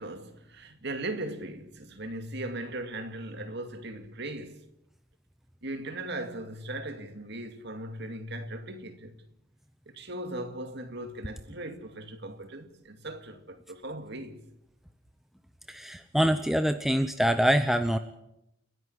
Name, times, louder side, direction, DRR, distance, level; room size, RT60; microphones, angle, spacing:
voice 1, 0.0-4.6 5.6-9.1 9.9-14.4, right 1 dB, 55° right, 2.3 m, -38 dB
voice 2, 15.7-18.0, equal, ahead, 0.8 m, -25 dB
29.5 x 11.0 x 9.7 m
head